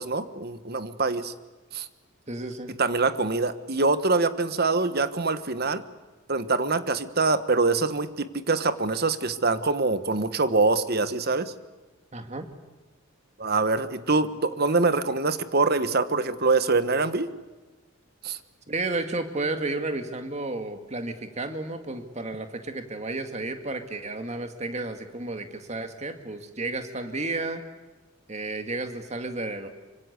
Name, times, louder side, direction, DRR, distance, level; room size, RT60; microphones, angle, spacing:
voice 1, 0.0-1.3 1.7-1.9 2.8-5.8 6.3-11.5 13.4-17.3 18.2-18.4, right 3 dB, 45° right, 12 dB, 1.3 m, -24 dB
voice 2, 2.3-2.7 12.1-12.5 18.7-27.6 28.3-29.7, right 2 dB, 30° right, 7 dB, 2.1 m, -32 dB
25.5 x 25.0 x 8.2 m, 1.2 s
head